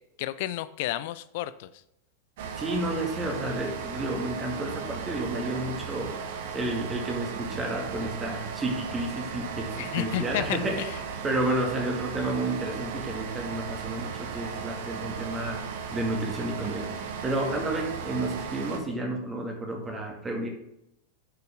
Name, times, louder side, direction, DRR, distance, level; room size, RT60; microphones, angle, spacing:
voice 1, 0.2-1.7 9.8-10.9, left 15 dB, 50° left, 14 dB, 0.5 m, -31 dB
sound 1, 2.4-18.8, right 6 dB, 55° right, 1.2 m, -36 dB
voice 2, 2.6-10.9 11.2-20.5, right 2 dB, 15° right, 1 dB, 2.2 m, -31 dB
10.5 x 6.8 x 3.6 m, 0.82 s
figure-of-eight pair, 90°, 0 cm